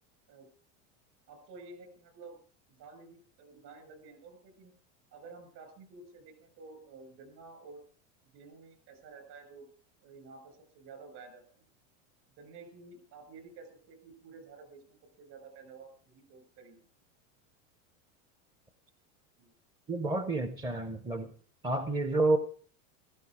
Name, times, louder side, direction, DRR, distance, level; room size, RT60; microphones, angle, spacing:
voice 1, 1.3-2.4 2.7-4.8 5.1-7.8 8.3-9.6 10.0-11.6 12.4-16.8 19.4-19.5, right 4 dB, 45° right, 8 dB, 6.6 m, -51 dB
voice 2, 19.9-21.3 21.6-22.4, right 2 dB, 10° right, 9 dB, 0.6 m, -29 dB
16.0 x 14.5 x 4.8 m, 0.43 s
supercardioid pair, 160°, 40 cm